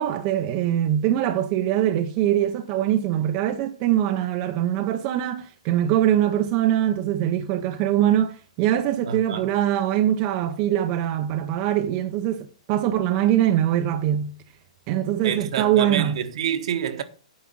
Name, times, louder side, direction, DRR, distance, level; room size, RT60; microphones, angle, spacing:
voice 1, 0.0-14.3 14.9-16.2, right 11 dB, 30° right, 0.7 m, -23 dB
voice 2, 9.1-9.5 15.2-17.0, right 8 dB, 60° right, 1.3 m, -28 dB
9.4 x 4.9 x 7.8 m
hypercardioid pair, 160°, 4 cm